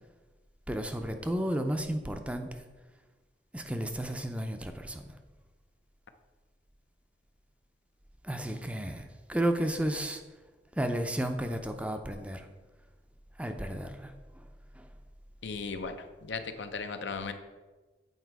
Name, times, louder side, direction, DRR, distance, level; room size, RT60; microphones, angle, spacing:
voice 1, 0.7-2.5 3.5-5.0 8.2-10.2 10.8-12.4 13.4-14.1, right 1 dB, 5° right, 6 dB, 0.5 m, -32 dB
voice 2, 15.4-17.3, left 4 dB, 80° left, 8 dB, 0.6 m, -37 dB
8.0 x 4.4 x 4.7 m, 1.2 s
head